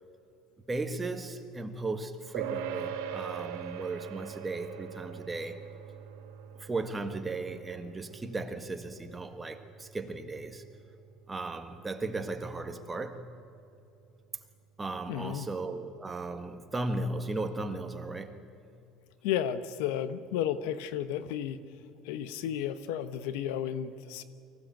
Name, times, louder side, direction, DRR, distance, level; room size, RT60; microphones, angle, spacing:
voice 1, 0.7-5.6 6.6-10.6 11.3-13.3 14.8-18.4, right 2 dB, 15° right, 7 dB, 1.7 m, -36 dB
sound 1, 2.3-12.0, right 8 dB, 85° right, 2.6 m, -42 dB
voice 2, 15.1-15.5 19.2-21.6 22.0-24.2, left 10 dB, 85° left, 12 dB, 1.1 m, -33 dB
24.0 x 16.0 x 9.1 m, 2.7 s
cardioid pair, 125°, 0 cm